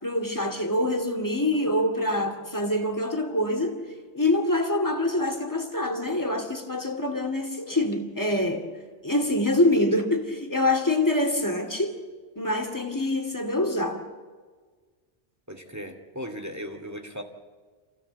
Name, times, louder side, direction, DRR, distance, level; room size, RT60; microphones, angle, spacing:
voice 1, 0.0-3.8 4.1-8.7 9.0-12.0 12.4-14.0, left 1 dB, 15° left, 2.4 m, -25 dB
voice 2, 15.5-17.2, equal, 15° right, 2.2 m, -37 dB
28.0 x 16.0 x 8.0 m
omnidirectional pair, 1.2 m